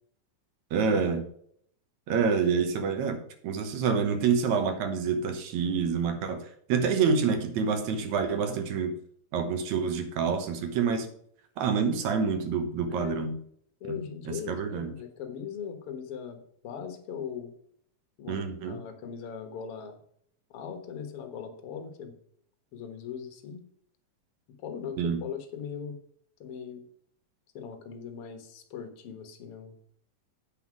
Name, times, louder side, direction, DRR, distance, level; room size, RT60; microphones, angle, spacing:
voice 1, 0.7-1.2 2.1-8.9 9.3-11.1 11.6-13.3 13.9-14.0 14.3-14.9 18.3-18.8 25.0-25.2, right 6 dB, 70° right, 8 dB, 2.3 m, -27 dB
voice 2, 12.9-13.3 13.8-17.5 18.2-20.0 20.5-22.2 22.7-23.6 24.6-26.0 26.4-26.8 27.5-29.7, left 7 dB, 55° left, 6 dB, 1.9 m, -39 dB
8.3 x 5.7 x 6.0 m, 0.65 s
omnidirectional pair, 3.5 m